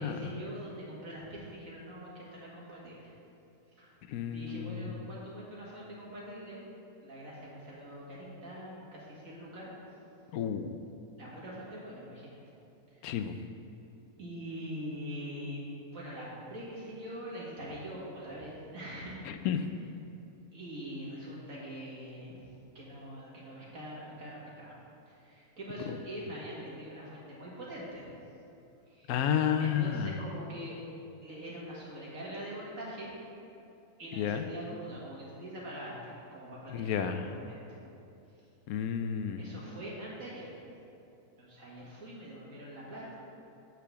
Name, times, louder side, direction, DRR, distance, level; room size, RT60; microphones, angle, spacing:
voice 1, 0.0-3.1 3.8-4.0 4.3-6.6 7.0-9.7 11.2-12.4 12.9-13.4 14.2-19.2 20.5-22.3 22.7-24.7 25.1-28.1 28.9-29.1 29.6-30.8 31.2-33.1 34.0-37.8 39.4-40.6 41.4-43.2, equal, 65° right, -6 dB, 2.2 m, -43 dB
voice 2, 4.1-4.9 10.3-10.8 13.0-13.4 19.2-19.7 25.9-26.0 29.1-30.1 34.2-34.5 36.7-37.2 38.7-39.4, left 8 dB, 80° left, 8 dB, 1.0 m, -31 dB
8.4 x 4.7 x 6.9 m, 2.7 s
omnidirectional pair, 1.6 m